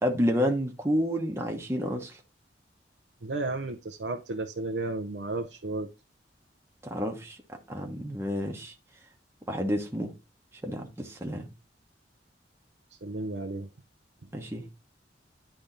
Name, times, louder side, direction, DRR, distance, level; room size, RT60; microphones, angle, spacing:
voice 1, 0.0-2.2 6.8-7.4 7.7-8.7 9.5-10.1 10.6-11.5 14.3-14.7, equal, 15° right, 1.0 m, -29 dB
voice 2, 3.2-5.9 13.0-13.7, right 2 dB, 70° right, 0.6 m, -33 dB
10.0 x 3.4 x 3.9 m
head